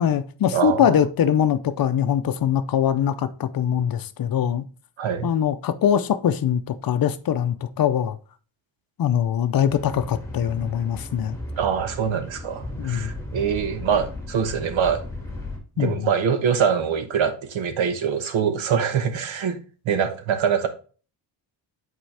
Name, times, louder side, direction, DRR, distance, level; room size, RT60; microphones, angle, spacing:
voice 1, 0.0-4.6 5.2-8.2 9.0-11.4 12.8-13.1 15.8-16.1, left 9 dB, 50° left, 0.6 m, -22 dB
voice 2, 0.5-1.0 5.0-5.3 11.6-15.0 15.8-19.6 19.8-20.7, right 7 dB, 75° right, 1.2 m, -24 dB
sound 1, 9.7-15.6, left 1 dB, 5° left, 2.1 m, -36 dB
8.8 x 4.5 x 3.3 m
wide cardioid pair, 165°, 47 cm